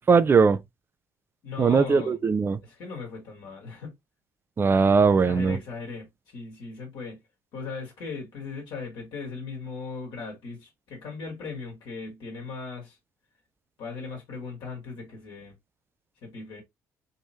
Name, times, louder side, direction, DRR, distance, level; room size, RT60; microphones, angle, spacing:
voice 1, 0.1-0.6 1.6-2.6 4.6-5.6, right 5 dB, 25° right, 0.5 m, -20 dB
voice 2, 1.4-2.2 2.6-3.9 5.2-7.2 7.5-13.0 13.8-15.6 16.2-16.6, left 4 dB, 55° left, 1.7 m, -38 dB
3.6 x 3.0 x 2.8 m
figure-of-eight pair, 50°, 9 cm